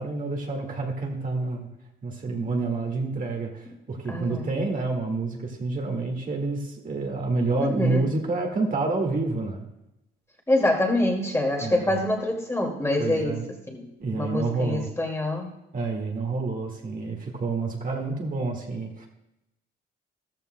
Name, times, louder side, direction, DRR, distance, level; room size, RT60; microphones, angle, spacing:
voice 1, 0.0-1.7 2.0-9.7 11.6-12.0 13.0-13.5 14.0-14.9 15.7-19.1, right 3 dB, 45° right, 1 dB, 1.9 m, -28 dB
voice 2, 4.1-4.5 7.6-8.1 10.5-13.9 14.2-15.5, left 1 dB, 15° left, 0 dB, 2.3 m, -26 dB
14.0 x 13.5 x 2.2 m, 0.90 s
cardioid pair, 90°, 20 cm